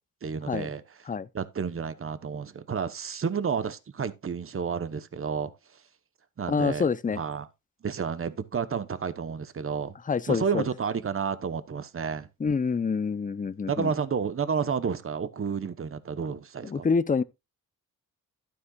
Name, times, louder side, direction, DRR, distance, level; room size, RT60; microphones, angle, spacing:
voice 1, 0.2-0.8 1.3-5.5 6.4-6.9 7.2-7.5 7.8-9.9 10.3-12.3 13.7-16.9, right 6 dB, 40° right, 1.1 m, -30 dB
voice 2, 6.5-7.2 10.1-10.6 12.4-13.9 16.6-17.2, left 5 dB, 25° left, 0.6 m, -27 dB
11.5 x 9.6 x 2.4 m
cardioid pair, 70°, 35 cm